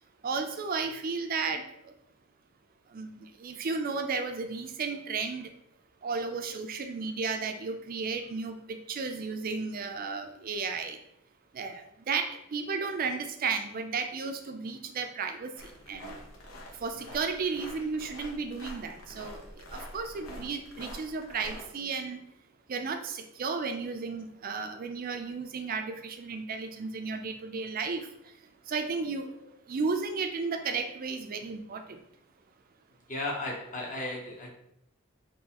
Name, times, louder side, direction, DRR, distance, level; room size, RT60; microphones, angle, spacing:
voice 1, 0.2-1.9 2.9-5.5 6.0-11.0 11.5-16.2 16.8-19.4 19.7-22.2 22.7-28.0 28.7-29.3 29.7-32.0, right 4 dB, 45° right, 6 dB, 0.4 m, -33 dB
sound 1, 15.6-21.7, equal, 85° left, 0.8 m, -46 dB
voice 2, 33.1-34.5, left 2 dB, 40° left, -2 dB, 1.0 m, -35 dB
3.9 x 2.7 x 2.9 m, 0.76 s
head